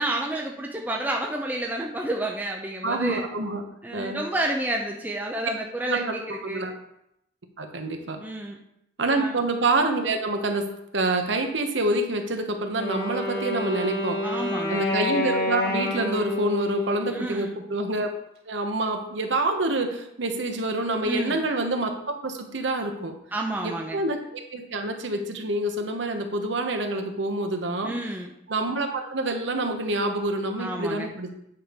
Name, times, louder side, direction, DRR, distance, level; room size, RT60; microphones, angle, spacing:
voice 1, 0.0-3.3 3.8-6.7 8.2-8.6 9.1-9.4 14.2-14.8 17.1-17.6 21.0-21.4 23.3-24.0 27.8-28.3 30.6-31.1, right 1 dB, 10° right, -1 dB, 0.6 m, -30 dB
voice 2, 2.8-3.6 3.9-4.2 5.9-6.1 6.4-6.7 7.6-8.2 9.0-10.7 10.9-14.2 14.7-18.1 18.5-23.1 23.6-27.9 28.5-31.3, right 2 dB, 75° right, 4 dB, 1.1 m, -27 dB
Wind instrument woodwind instrument, 12.8-17.8, left 1 dB, 50° left, 1.6 m, -29 dB
8.7 x 4.5 x 5.2 m, 0.78 s
head